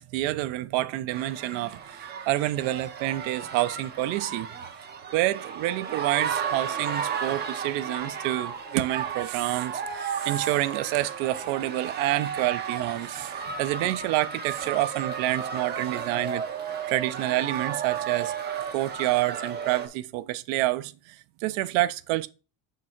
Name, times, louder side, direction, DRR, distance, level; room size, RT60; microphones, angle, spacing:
voice 1, 0.0-4.5 5.1-16.4 16.9-18.3 18.7-22.3, right 16 dB, 70° right, 0.6 m, -28 dB
sound 1, 1.1-19.9, right 7 dB, 20° right, 0.5 m, -33 dB
6.5 x 3.7 x 4.3 m
cardioid pair, 160°, 48 cm